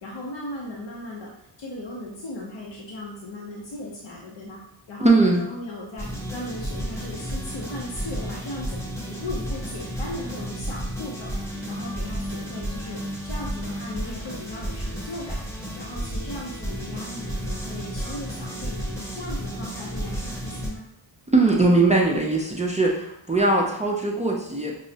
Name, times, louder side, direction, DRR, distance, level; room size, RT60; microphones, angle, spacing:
voice 1, 0.0-4.6 4.9-8.8 9.1-20.8, left 1 dB, 70° left, -3 dB, 0.7 m, -37 dB
voice 2, 5.0-5.4 21.3-24.8, right 2 dB, 15° right, -2 dB, 0.3 m, -20 dB
sound 1, 6.0-20.7, equal, 5° left, 0.8 m, -32 dB
5.4 x 2.0 x 2.7 m, 0.75 s
wide cardioid pair, 125°, 47 cm